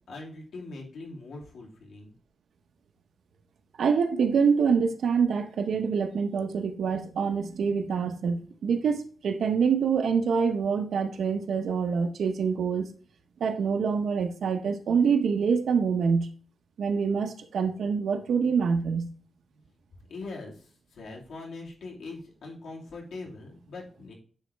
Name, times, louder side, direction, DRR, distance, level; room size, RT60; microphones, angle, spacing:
voice 1, 0.1-2.1 20.1-24.1, left 3 dB, 90° left, 2.6 m, -42 dB
voice 2, 3.8-12.9 13.4-16.3 16.8-19.1, right 6 dB, 85° right, 1.0 m, -26 dB
9.6 x 4.1 x 3.4 m
wide cardioid pair, 130°, 0 cm